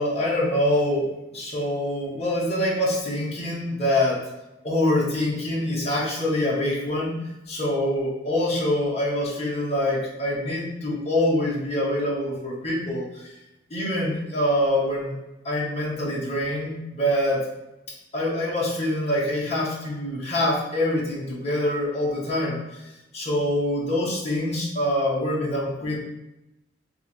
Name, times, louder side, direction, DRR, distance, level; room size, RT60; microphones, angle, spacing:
voice 1, 0.0-4.2 4.6-7.2 7.5-13.3 13.7-15.1 15.4-17.5 18.1-22.8 23.1-26.0, left 1 dB, 35° left, -5 dB, 1.4 m, -25 dB
3.5 x 3.2 x 4.5 m, 0.95 s
head